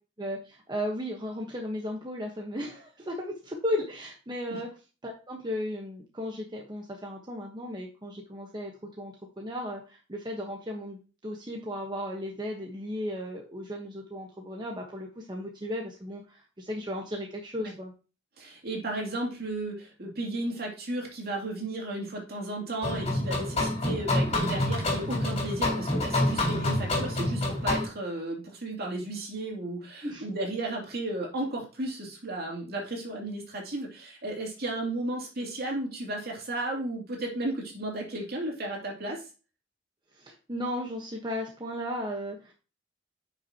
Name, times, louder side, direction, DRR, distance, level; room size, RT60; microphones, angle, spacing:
voice 1, 0.2-4.7 5.0-8.7 9.0-17.9 30.0-30.2 40.1-42.5, left 1 dB, 25° right, 0 dB, 1.1 m, -35 dB
voice 2, 18.4-39.2, right 2 dB, 55° right, -1 dB, 2.8 m, -34 dB
sound 1, 22.8-27.9, left 1 dB, 35° left, 4.0 m, -27 dB
9.9 x 5.8 x 2.9 m, 0.34 s
head